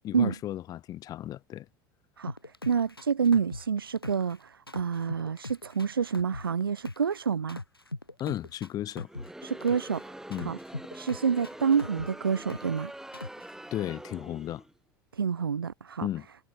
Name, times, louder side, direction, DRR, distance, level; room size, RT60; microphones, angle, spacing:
voice 1, 0.0-1.7 8.2-9.1 10.3-10.6 13.7-14.6 16.0-16.3, left 12 dB, 30° left, 0.5 m, -34 dB
voice 2, 2.2-7.6 9.4-10.6 10.9-12.9 15.1-16.1, right 6 dB, 80° right, 0.7 m, -28 dB
sound 1, 2.3-4.4 4.7-7.2 7.5-10.0 10.3-12.8 13.1-13.5, left 2 dB, 85° left, 1.4 m, -40 dB
Crowd, 9.0-14.7, right 1 dB, 5° right, 4.8 m, -44 dB
figure-of-eight pair, 75°, 12 cm